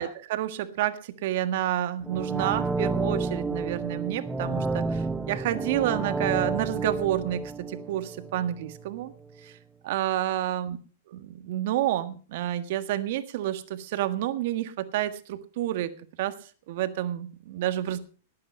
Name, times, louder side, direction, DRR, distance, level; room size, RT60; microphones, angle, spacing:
voice 1, 0.0-7.4 7.7-9.1 9.4-9.5 9.8-10.8 11.1-15.9 16.2-16.4 16.7-18.0, right 13 dB, 60° right, 11 dB, 1.6 m, -29 dB
sound 1, 2.0-8.9 9.2-9.3, right 3 dB, 10° right, 0.8 m, -30 dB
19.0 x 8.7 x 5.5 m, 0.39 s
hypercardioid pair, 135°, 0 cm